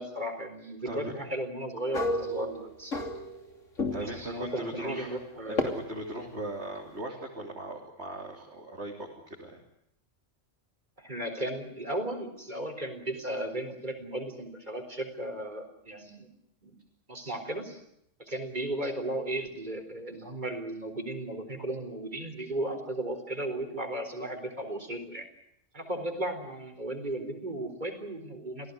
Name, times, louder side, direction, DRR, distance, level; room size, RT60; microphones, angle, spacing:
voice 1, 0.0-3.0 3.9-5.8 11.0-16.3 16.6-16.8 17.1-17.8 18.2-25.3 25.7-28.7, right 1 dB, 35° right, 7 dB, 4.3 m, -35 dB
sound 1, 1.9-3.5 3.8-4.3 5.6-5.7, left 2 dB, 80° left, 3.4 m, -31 dB
voice 2, 3.9-5.2 5.4-9.6, right 1 dB, 60° right, -1 dB, 3.9 m, -38 dB
28.5 x 17.0 x 9.6 m, 0.75 s
omnidirectional pair, 1.3 m